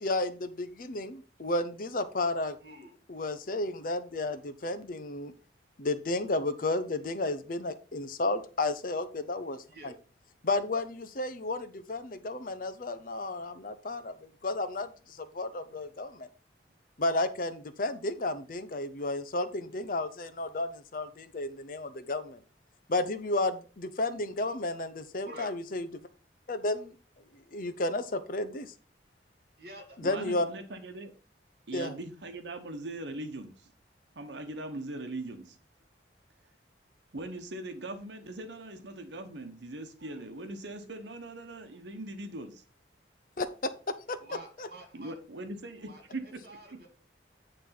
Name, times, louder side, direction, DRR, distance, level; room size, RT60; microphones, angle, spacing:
voice 1, 0.0-2.6 3.1-5.3 5.8-9.6 10.4-14.1 14.4-16.3 17.0-22.4 22.9-25.9 26.5-26.9 27.5-28.7 30.0-30.5 31.7-31.9 43.4-43.5 44.1-44.2 44.6-44.7, left 2 dB, 50° left, 12 dB, 0.7 m, -32 dB
voice 2, 2.6-3.0 9.6-10.0 25.2-25.5 29.6-30.0 40.0-40.2 44.2-45.1 45.8-46.9, right 1 dB, 55° right, 4 dB, 2.3 m, -49 dB
voice 3, 30.0-31.1 31.7-33.7 34.1-35.6 37.1-42.6 44.9-46.4 46.7-46.8, right 2 dB, 75° right, 7 dB, 1.0 m, -40 dB
9.2 x 3.3 x 5.7 m, 0.37 s
head